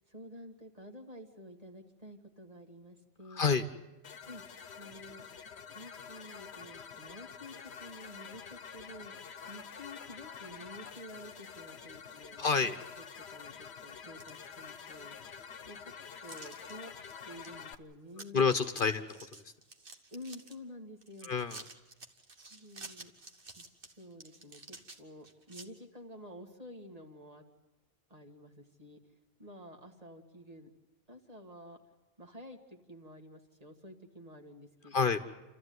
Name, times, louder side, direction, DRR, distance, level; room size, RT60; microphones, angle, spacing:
voice 1, 0.1-3.5 4.2-4.4 4.8-5.2 5.7-9.1 9.5-12.7 13.3-15.4 15.7-16.9 17.2-18.4 20.1-21.3 22.5-23.1 23.6-23.7 24.0-27.4 28.1-29.0 29.4-30.7 31.1-31.8 32.2-35.1, left 1 dB, 35° right, 3 dB, 2.2 m, -50 dB
voice 2, 3.3-3.7 12.4-12.8 18.3-19.1 21.2-21.6 34.9-35.2, left 5 dB, 55° left, 10 dB, 1.2 m, -28 dB
sound 1, 4.0-17.7, left 6 dB, 90° left, 1.2 m, -48 dB
sound 2, 10.7-11.3 11.8-11.9 12.6-12.7 13.1-13.6 13.9-15.0 15.3-15.4 16.3-16.7 17.1-17.5 17.8-17.9 18.1-18.4 18.7-20.5 21.0-25.7, right 3 dB, 60° right, 1.8 m, -51 dB
29.0 x 14.0 x 9.5 m, 1.1 s
omnidirectional pair, 1.1 m